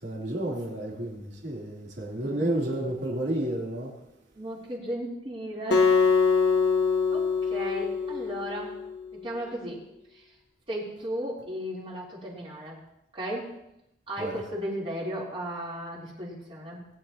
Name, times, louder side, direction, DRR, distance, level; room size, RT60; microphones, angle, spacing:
voice 1, 0.0-3.9 14.2-14.4, right 1 dB, 70° right, 3.3 m, -31 dB
voice 2, 2.1-2.5 4.3-5.9 7.1-8.8 9.1-9.8 10.1-10.4 10.7-12.8 13.1-13.6 14.1-16.9, equal, 30° right, 3.5 m, -35 dB
Acoustic guitar, 5.7-9.0, left 5 dB, 60° left, 1.4 m, -24 dB
20.0 x 10.0 x 2.9 m
head